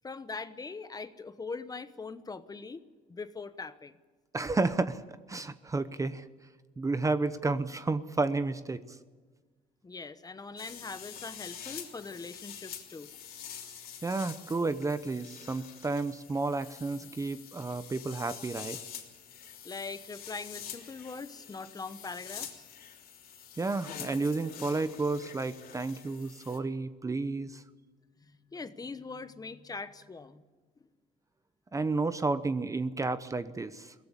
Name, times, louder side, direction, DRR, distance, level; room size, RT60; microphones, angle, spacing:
voice 1, 0.0-2.8 3.1-4.0 9.8-13.1 19.6-22.7 28.2-30.4, left 4 dB, 20° left, 12 dB, 1.1 m, -42 dB
voice 2, 4.3-5.0 5.3-6.3 6.8-8.8 14.0-18.8 23.6-27.6 31.7-33.9, right 3 dB, 20° right, 13 dB, 0.8 m, -31 dB
sound 1, 10.6-26.6, left 8 dB, 60° left, 3.3 m, -46 dB
22.5 x 17.0 x 8.3 m, 1.4 s
cardioid pair, 110°, 17 cm